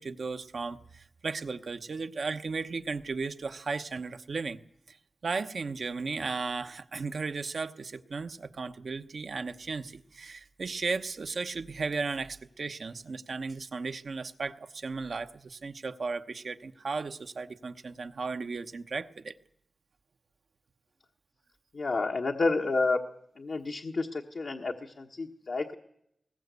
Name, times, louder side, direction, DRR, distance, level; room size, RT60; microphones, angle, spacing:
voice 1, 0.0-4.6 4.9-5.0 5.2-19.3, right 4 dB, 75° right, 8 dB, 1.0 m, -35 dB
voice 2, 21.7-23.0 23.4-25.7, left 3 dB, 80° left, 2 dB, 1.2 m, -30 dB
21.0 x 18.5 x 8.2 m, 0.75 s
cardioid pair, 50°, 0 cm